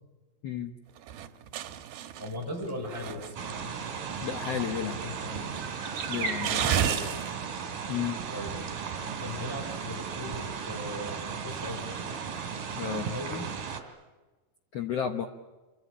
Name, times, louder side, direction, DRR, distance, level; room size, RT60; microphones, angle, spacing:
voice 1, 0.4-0.7 4.2-5.0 6.1-6.6 7.9-8.2 12.7-13.1 14.7-15.3, left 9 dB, 80° left, 6 dB, 1.4 m, -32 dB
sound 1, 1.0-3.6 4.0-4.6 5.1-5.2 5.6-7.3, right 9 dB, 80° right, 3.1 m, -32 dB
voice 2, 2.2-3.8 4.8-5.5 6.3-7.1 8.3-8.6 9.0-12.1 12.8-13.5, left 1 dB, 5° left, -1 dB, 5.4 m, -39 dB
sound 2, 3.4-13.8, right 6 dB, 60° right, 4.1 m, -35 dB
27.5 x 24.5 x 8.6 m, 1.2 s
omnidirectional pair, 4.3 m